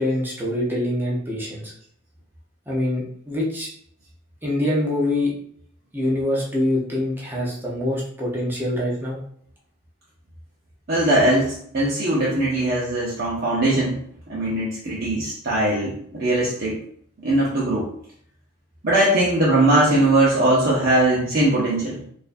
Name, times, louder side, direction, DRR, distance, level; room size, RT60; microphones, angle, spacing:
voice 1, 0.0-1.7 2.7-3.7 4.4-5.3 5.9-9.2, left 1 dB, 10° right, -5 dB, 0.8 m, -24 dB
voice 2, 10.9-14.0 14.3-16.8 17.2-17.9 18.8-22.0, right 1 dB, 45° right, -6 dB, 0.8 m, -20 dB
4.3 x 2.6 x 2.6 m, 0.64 s
head